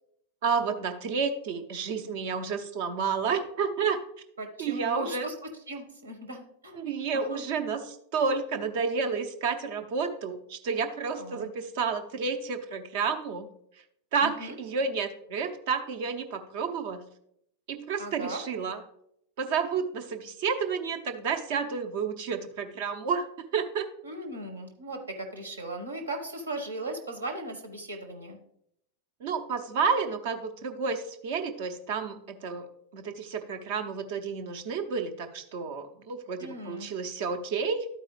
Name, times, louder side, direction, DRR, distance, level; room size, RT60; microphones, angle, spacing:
voice 1, 0.4-4.0 4.6-5.3 6.7-13.5 14.1-17.0 17.7-18.8 19.4-23.9 29.2-37.9, right 5 dB, 50° right, 8 dB, 0.8 m, -30 dB
voice 2, 4.4-5.3 5.7-7.4 11.2-11.5 14.2-14.6 18.0-18.4 24.0-28.4 36.4-36.9, right 1 dB, 75° right, 4 dB, 1.3 m, -38 dB
12.0 x 4.7 x 3.2 m, 0.74 s
figure-of-eight pair, 90°, 0 cm